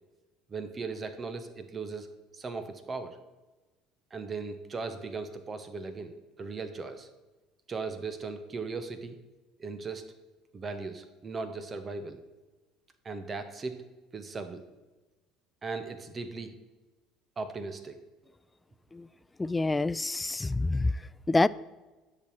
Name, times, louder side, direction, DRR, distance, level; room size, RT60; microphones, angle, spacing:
voice 1, 0.5-3.2 4.1-7.1 7.7-9.2 9.6-10.1 10.5-12.2 13.0-13.8 14.1-14.6 15.6-16.5 17.4-18.1, right 4 dB, 30° right, 9 dB, 0.9 m, -38 dB
voice 2, 19.4-20.9 21.3-21.5, left 2 dB, 15° left, 19 dB, 0.3 m, -26 dB
10.0 x 6.3 x 4.4 m, 1.2 s
figure-of-eight pair, 60°, 0 cm